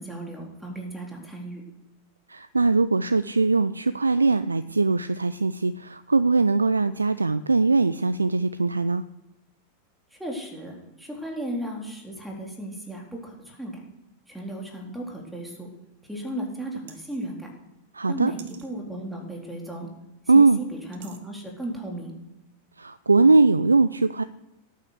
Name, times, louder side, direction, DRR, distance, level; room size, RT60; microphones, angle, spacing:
voice 1, 0.0-1.6 10.1-13.8 14.3-15.7 16.0-17.5 18.1-19.9 20.3-22.1, right 1 dB, 5° right, 0 dB, 3.8 m, -35 dB
voice 2, 2.3-9.0 17.9-18.3 20.3-20.6 22.8-24.2, right 3 dB, 80° right, 15 dB, 0.4 m, -21 dB
sound 1, 16.9-17.3 18.4-18.7 20.9-21.2, right 8 dB, 55° right, 2.0 m, -48 dB
17.5 x 9.4 x 6.6 m, 0.93 s
figure-of-eight pair, 90°, 0 cm